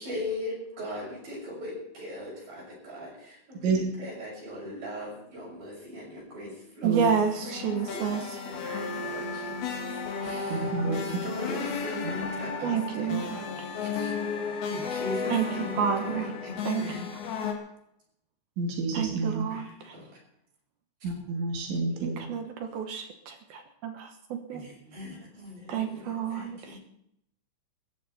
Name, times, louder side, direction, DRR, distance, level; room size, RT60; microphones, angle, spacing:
voice 1, 0.0-7.0 7.4-9.5 10.2-13.5 13.8-14.1 14.7-17.1 19.5-20.1 24.5-26.8, left 1 dB, 50° right, -4 dB, 8.3 m, -39 dB
voice 2, 6.8-8.2 12.6-13.4 15.3-15.5 15.8-16.3 16.7-16.9 18.9-19.6 22.2-23.3 23.8-24.6 25.7-26.6, right 7 dB, 65° right, 5 dB, 2.8 m, -29 dB
sound 1, 7.2-17.5, left 5 dB, 60° left, 3.6 m, -34 dB
voice 3, 10.5-11.0 18.6-19.5 21.0-22.2, right 4 dB, 85° right, 0 dB, 5.0 m, -29 dB
19.0 x 14.5 x 4.3 m, 0.78 s
omnidirectional pair, 5.3 m